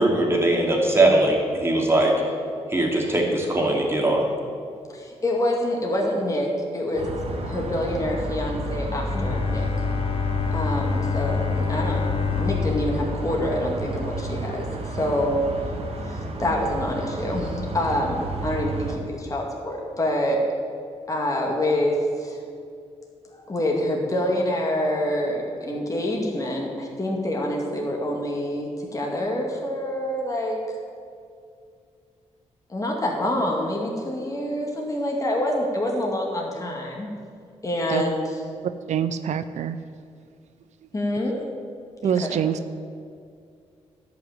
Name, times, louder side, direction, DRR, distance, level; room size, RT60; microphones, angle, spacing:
voice 1, 0.0-2.1 2.7-4.2, right 1 dB, 20° right, -1 dB, 2.8 m, -20 dB
voice 2, 4.9-7.1 7.4-9.7 10.5-15.5 16.0-20.5 21.1-22.4 23.3-30.6 32.7-37.1 37.6-38.4 40.9-41.5 42.0-42.4, left 1 dB, 25° left, -1 dB, 2.2 m, -26 dB
sound 1, 6.9-19.0, right 1 dB, 55° right, 1.7 m, -31 dB
Bowed string instrument, 9.1-14.4, left 6 dB, 50° left, 0.8 m, -28 dB
voice 3, 38.6-39.8 42.0-42.6, right 9 dB, 75° right, 12 dB, 0.5 m, -25 dB
11.0 x 5.8 x 8.9 m, 2.3 s
cardioid pair, 75°, 12 cm